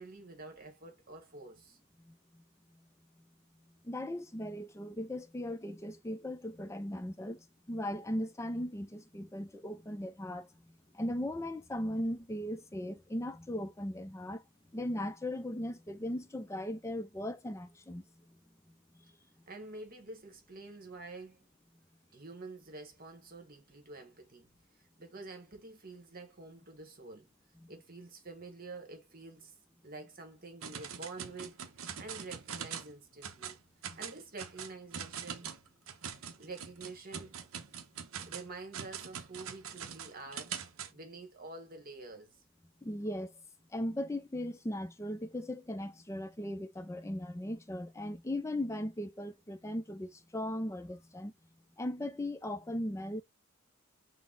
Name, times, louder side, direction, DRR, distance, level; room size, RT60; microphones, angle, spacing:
voice 1, 0.0-1.8 19.5-21.5 22.1-24.5 24.7-27.3 27.7-29.5 29.8-31.6 32.0-33.6 33.9-35.5 36.4-37.4 38.3-40.6 40.9-42.4, right 3 dB, 40° right, 1.2 m, -48 dB
voice 2, 2.0-2.4 3.8-14.4 14.7-18.4 18.9-19.1 27.6-27.7 33.9-34.0 42.8-43.3 43.7-51.3 51.8-53.2, left 1 dB, 15° left, 0.4 m, -38 dB
sound 1, 30.6-32.9 33.2-33.6 33.8-40.9, right 7 dB, 60° right, 0.6 m, -43 dB
4.0 x 2.1 x 3.7 m
head